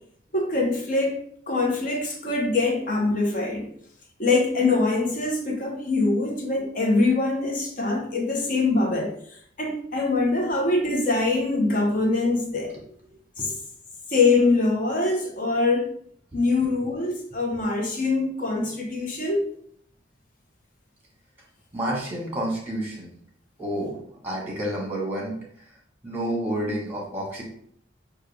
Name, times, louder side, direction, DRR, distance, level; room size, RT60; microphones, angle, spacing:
voice 1, 0.3-3.7 4.2-9.1 9.6-12.8 13.4-13.5 14.1-15.9 16.3-19.4, left 3 dB, 45° left, 0 dB, 1.0 m, -23 dB
voice 2, 21.7-23.1 23.6-24.0 24.2-25.4 26.0-27.4, right 1 dB, 10° right, -3 dB, 1.4 m, -29 dB
6.4 x 2.4 x 3.4 m, 0.64 s
head